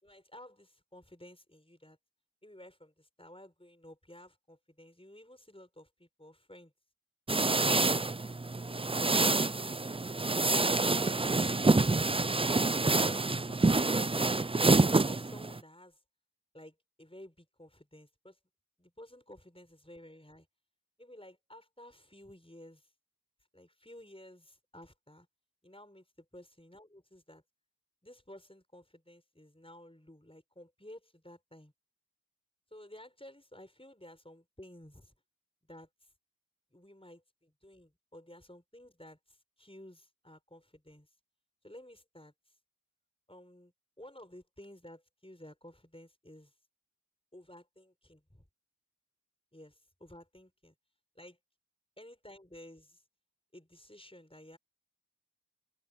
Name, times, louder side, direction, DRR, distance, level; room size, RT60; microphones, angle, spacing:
voice 1, 0.0-2.0 2.4-6.7 15.0-16.0 16.5-18.4 18.8-20.5 21.0-22.9 23.5-25.3 25.6-27.4 28.0-31.7 32.7-35.1 35.7-35.9 36.7-41.1 41.6-42.3 43.3-46.5 47.3-48.4 49.5-50.7 51.1-51.4 52.0-53.0 53.5-54.6, left 1 dB, 15° left, 6.6 m, -54 dB
sound 1, 7.3-15.6, right 3 dB, 15° right, 0.4 m, -27 dB
wide cardioid pair, 50°, 41 cm